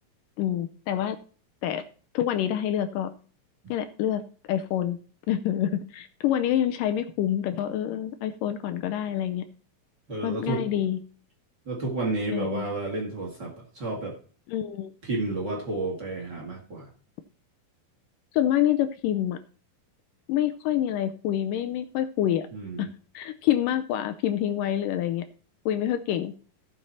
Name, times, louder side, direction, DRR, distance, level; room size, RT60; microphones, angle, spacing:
voice 1, 0.4-1.2 1.6-1.8 2.1-3.1 3.7-4.2 4.5-5.0 5.3-9.4 10.2-11.0 12.3-12.7 14.5-14.9 18.3-19.4 20.3-22.5 22.8-22.9 23.1-25.2 25.7-26.3, left 11 dB, 80° left, 9 dB, 2.1 m, -27 dB
voice 2, 10.1-10.7 11.7-14.2 15.0-16.9 22.5-22.9, right 2 dB, 35° right, -1 dB, 2.1 m, -31 dB
16.0 x 6.0 x 4.2 m, 0.41 s
omnidirectional pair, 4.1 m